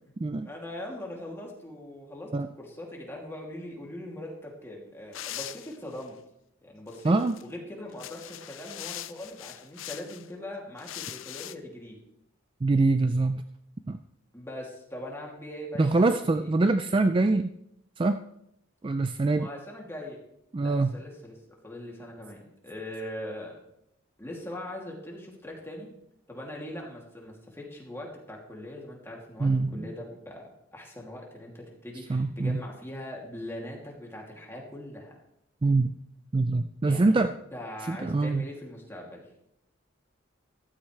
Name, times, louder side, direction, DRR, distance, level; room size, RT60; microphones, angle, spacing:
voice 1, 0.4-2.3 2.6-6.2 6.6-7.1 7.4-12.0 14.3-16.5 19.3-20.2 20.6-21.4 21.6-23.6 24.2-25.9 26.3-35.1 36.8-37.2 37.5-39.2, left 1 dB, 10° left, -2 dB, 2.7 m, -41 dB
sound 1, 5.1-6.1 6.9-7.4 7.9-10.3 10.8-11.6, left 13 dB, 75° left, 0.5 m, -41 dB
voice 2, 7.0-7.4 12.6-13.4 13.9-14.0 15.8-17.5 18.0-18.2 18.8-19.5 20.5-20.9 29.4-29.9 32.1-32.6 35.6-35.9 36.3-37.3 37.9-38.4, right 3 dB, 25° right, 9 dB, 0.4 m, -24 dB
14.5 x 13.5 x 3.3 m, 0.79 s
head